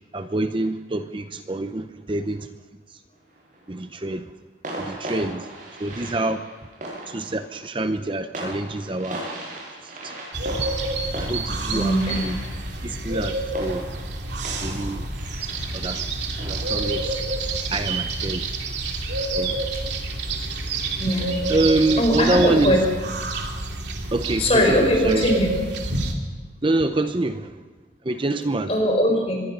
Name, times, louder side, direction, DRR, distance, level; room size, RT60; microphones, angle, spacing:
voice 1, 0.1-2.5 3.7-4.3 4.8-5.5 5.8-6.5 7.1-9.3 9.8-10.2 11.2-12.0 12.2-12.4 12.8-13.8 14.6-15.1 15.7-16.1 16.5-17.3 17.7-18.5 19.4-19.7 21.5-22.8 24.1-25.3 26.6-27.5 28.0-28.7, right 2 dB, 30° right, 9 dB, 0.7 m, -26 dB
sound 1, 3.1-3.7 4.6-18.0, right 1 dB, 45° right, 7.8 m, -38 dB
sound 2, 10.3-26.1, right 2 dB, 70° right, 2.7 m, -28 dB
voice 2, 11.7-12.3 19.7-19.8 21.0-21.3 22.0-22.8 24.4-25.5 28.7-29.4, equal, 35° left, 2 dB, 5.2 m, -20 dB
25.5 x 21.5 x 5.5 m, 1.3 s
head